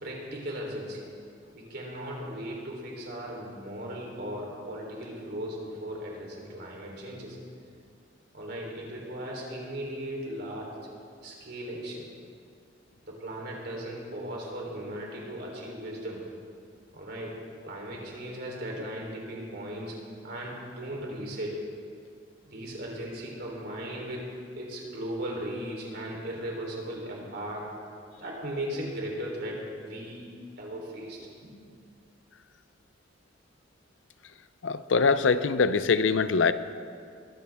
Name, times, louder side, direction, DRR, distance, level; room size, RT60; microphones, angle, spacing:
voice 1, 0.0-1.1 1.5-7.4 8.3-10.7 11.2-12.1 13.0-16.2 16.9-17.4 17.6-19.9 20.2-21.6 22.5-27.7 28.2-30.3 30.6-31.5, equal, 60° right, -2 dB, 3.6 m, -37 dB
voice 2, 34.6-36.5, left 5 dB, 80° left, 13 dB, 0.6 m, -23 dB
21.5 x 14.0 x 3.6 m, 2.3 s
head